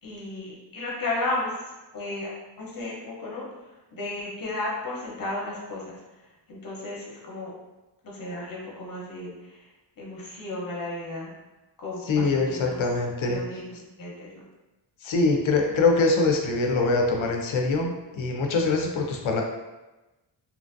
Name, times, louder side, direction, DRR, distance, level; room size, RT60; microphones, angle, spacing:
voice 1, 0.0-1.6 1.9-2.3 2.6-3.4 3.9-6.0 6.5-7.5 8.0-9.7 10.0-11.3 11.8-12.8 13.2-14.4, left 2 dB, 45° left, -4 dB, 0.9 m, -34 dB
voice 2, 12.1-13.4 15.0-19.4, left 3 dB, 80° left, 2 dB, 0.6 m, -23 dB
2.9 x 2.5 x 2.5 m, 1.1 s
wide cardioid pair, 140°, 47 cm